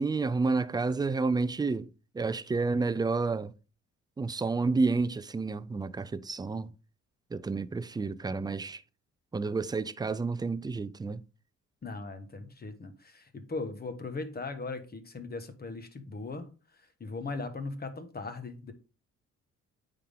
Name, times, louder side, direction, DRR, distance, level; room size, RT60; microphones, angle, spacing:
voice 1, 0.0-1.9 2.1-3.5 4.2-6.7 7.3-8.8 9.3-11.2, right 4 dB, 15° right, 0.4 m, -30 dB
voice 2, 11.8-16.5 17.0-18.7, left 3 dB, 30° left, 1.2 m, -38 dB
9.1 x 3.7 x 3.6 m
cardioid pair, 90°, 30 cm